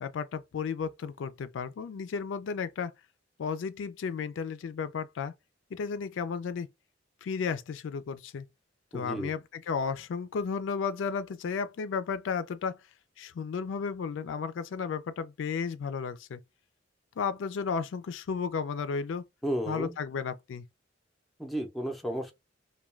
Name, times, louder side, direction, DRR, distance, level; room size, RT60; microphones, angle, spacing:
voice 1, 0.0-2.9 3.4-5.3 5.7-6.7 7.2-8.4 8.9-12.8 13.2-16.4 17.2-19.2 19.7-20.6, left 5 dB, 80° left, 0.3 m, -33 dB
voice 2, 8.9-9.3 19.4-20.0 21.4-22.3, equal, ahead, 0.5 m, -33 dB
2.3 x 2.2 x 3.1 m
head